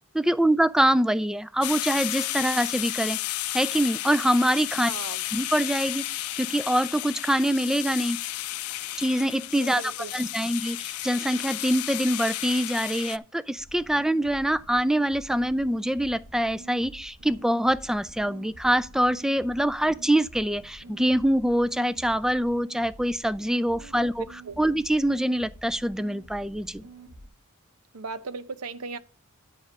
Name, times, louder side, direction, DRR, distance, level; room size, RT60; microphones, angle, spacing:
voice 1, 0.1-3.2 3.5-4.9 5.3-8.2 9.0-9.8 10.1-24.2 24.6-26.8, right 1 dB, ahead, 0.3 m, -24 dB
sound 1, 1.6-13.2, left 16 dB, 90° left, 0.4 m, -33 dB
voice 2, 4.7-5.2 9.5-10.1 23.7-23.9 24.4-24.6 27.9-29.0, right 4 dB, 85° right, 0.7 m, -37 dB
sound 2, 13.6-27.3, right 2 dB, 70° right, 1.6 m, -48 dB
9.7 x 5.1 x 5.3 m
head